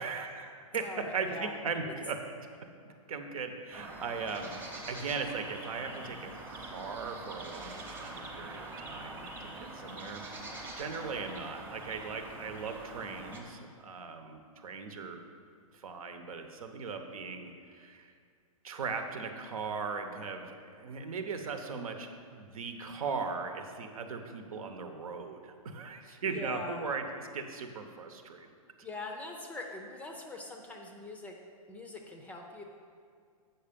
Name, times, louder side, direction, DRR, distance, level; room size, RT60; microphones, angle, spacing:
voice 1, 0.0-2.2 3.1-15.2 15.7-18.1 18.6-28.5, right 5 dB, 70° right, 6 dB, 1.0 m, -38 dB
voice 2, 0.8-1.6 1.9-2.0 26.1-26.8 28.8-31.4 31.7-32.6, left 2 dB, 10° left, 2 dB, 0.5 m, -43 dB
sound 1, 3.7-13.4, right 2 dB, 10° right, 0.9 m, -44 dB
8.1 x 5.8 x 5.2 m, 2.2 s
hypercardioid pair, 140°, 18 cm